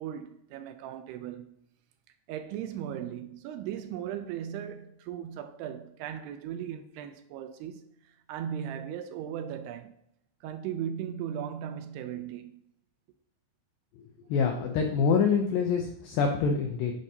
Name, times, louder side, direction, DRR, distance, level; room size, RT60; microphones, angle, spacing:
voice 1, 0.0-1.6 2.3-9.9 10.4-12.6, right 9 dB, 85° right, 2.5 m, -37 dB
voice 2, 14.3-16.9, left 5 dB, 85° left, 2.0 m, -25 dB
10.5 x 5.3 x 2.8 m
omnidirectional pair, 4.9 m